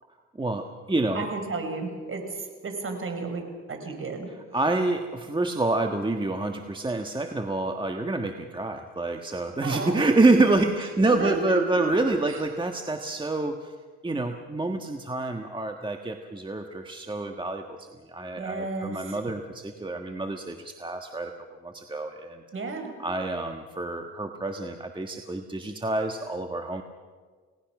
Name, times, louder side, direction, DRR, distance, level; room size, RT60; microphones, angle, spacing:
voice 1, 0.3-1.3 4.5-13.7 14.0-21.3 21.6-22.4 23.0-26.8, right 2 dB, 15° right, 4 dB, 1.5 m, -27 dB
voice 2, 1.1-3.4 3.7-4.3 9.6-10.1 11.2-11.9 18.4-19.2 22.5-22.9, right 3 dB, 45° right, 5 dB, 5.3 m, -32 dB
29.5 x 18.5 x 6.1 m, 1.5 s
cardioid pair, 90°, 30 cm